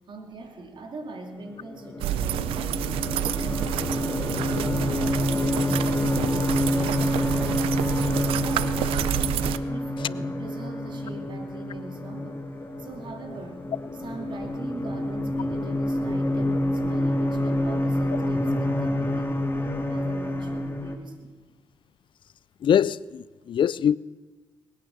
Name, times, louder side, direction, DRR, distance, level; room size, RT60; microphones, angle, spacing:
voice 1, 0.1-2.9 3.3-7.7 8.0-9.1 9.4-12.4 12.8-13.7 13.9-19.5 19.9-21.4, right 3 dB, 60° right, 2.8 m, -41 dB
sound 1, 1.5-21.0, left 1 dB, 25° left, 2.5 m, -28 dB
sound 2, 2.0-9.6, right 12 dB, 85° right, 0.5 m, -29 dB
voice 2, 22.6-24.0, left 9 dB, 65° left, 0.5 m, -23 dB
20.0 x 9.1 x 6.9 m
supercardioid pair, 45°, 9 cm